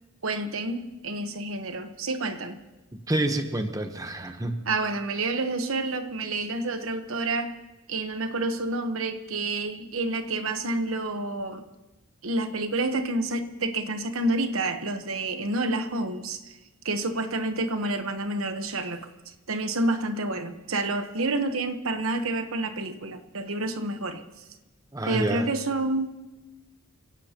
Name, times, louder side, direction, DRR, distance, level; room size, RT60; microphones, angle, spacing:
voice 1, 0.2-2.6 4.7-7.6 7.9-11.6 12.2-16.5 16.8-19.1 19.5-24.2 25.0-26.2, right 2 dB, 70° right, 1.1 m, -29 dB
voice 2, 3.1-4.6 24.9-25.5, right 1 dB, 15° right, 1.0 m, -28 dB
28.5 x 17.0 x 2.9 m
head